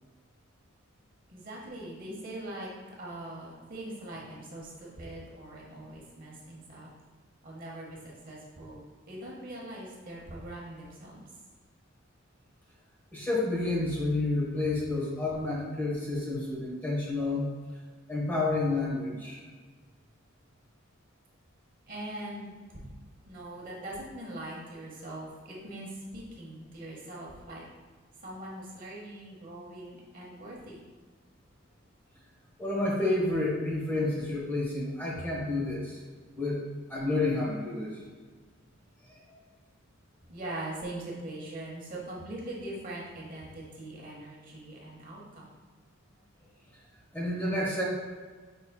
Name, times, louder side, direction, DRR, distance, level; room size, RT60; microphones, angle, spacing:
voice 1, 1.3-6.9 7.4-11.2 21.9-22.8 23.3-27.6 28.2-30.8 40.3-45.5, right 1 dB, 40° right, -3 dB, 0.9 m, -42 dB
voice 2, 13.1-17.4 18.1-19.4 32.6-36.0 36.4-36.6 36.9-38.0 39.1-39.2 47.1-47.8, left 2 dB, 10° left, -6 dB, 1.0 m, -30 dB
5.5 x 3.9 x 2.3 m, 1.4 s
head